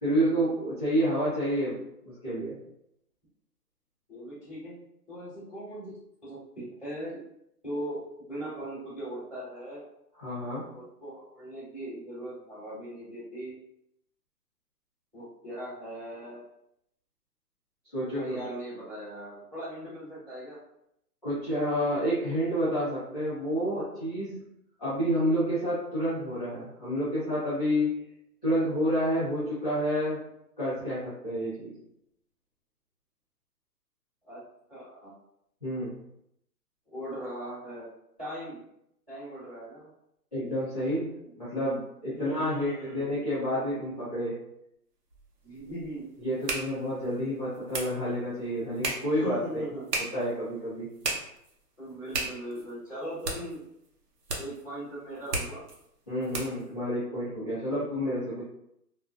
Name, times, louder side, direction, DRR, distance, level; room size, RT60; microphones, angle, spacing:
voice 1, 0.0-1.8 2.0-2.6 10.2-10.7 17.9-18.4 21.2-24.4 24.8-28.0 28.4-30.2 30.6-31.7 35.6-36.0 40.3-41.1 41.4-44.3 46.2-49.4 50.0-50.9 56.1-58.5, equal, 25° left, -15 dB, 0.7 m, -29 dB
voice 2, 4.1-4.8 5.1-5.9 6.2-7.2 7.6-9.8 10.7-13.5 15.1-16.4 18.1-20.6 34.2-34.4 34.7-35.1 36.9-37.9 38.2-38.6 39.1-39.9 41.2-41.3 42.1-43.1 45.4-46.0 49.2-49.9 51.8-53.6 54.4-55.6 57.7-57.8, right 1 dB, 5° right, -22 dB, 1.1 m, -39 dB
sound 1, 45.1-56.7, right 3 dB, 75° right, 0.8 m, -37 dB
2.4 x 2.2 x 2.3 m, 0.76 s
hypercardioid pair, 175°, 48 cm